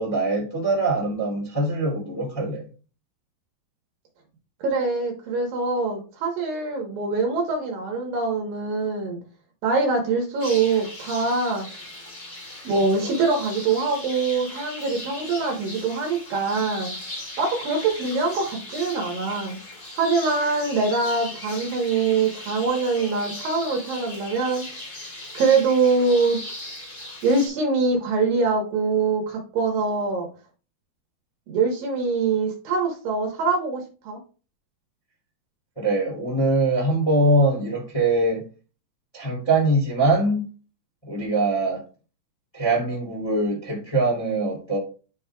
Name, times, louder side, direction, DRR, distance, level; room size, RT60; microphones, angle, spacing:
voice 1, 0.0-2.7 35.8-38.4 39.1-40.5 41.1-41.8 42.5-44.8, right 2 dB, 10° left, 1.6 m, -23 dB
voice 2, 4.6-9.2 9.6-11.7 12.6-16.9 17.4-19.6 20.0-24.6 25.3-26.4 27.2-30.3 31.5-34.2, right 4 dB, 65° right, 2.7 m, -23 dB
sound 1, 10.4-27.5, left 1 dB, 35° left, 2.2 m, -38 dB
10.5 x 5.3 x 2.3 m
omnidirectional pair, 4.8 m